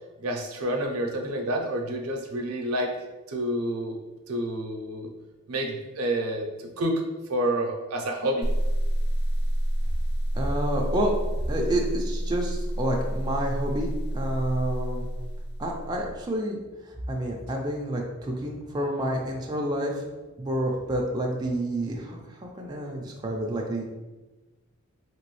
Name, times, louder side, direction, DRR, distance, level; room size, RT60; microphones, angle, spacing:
voice 1, 0.2-2.9 3.3-4.0 4.3-5.1 5.5-6.5 6.8-7.0 7.3-8.5, right 1 dB, 90° right, 2 dB, 0.6 m, -28 dB
sound 1, 8.4-16.2, right 1 dB, 50° left, 0.4 m, -28 dB
voice 2, 10.3-11.1 11.5-15.1 15.6-16.6 17.1-20.1 20.4-23.9, right 1 dB, 20° right, -1 dB, 0.4 m, -29 dB
3.0 x 3.0 x 3.1 m, 1.1 s
head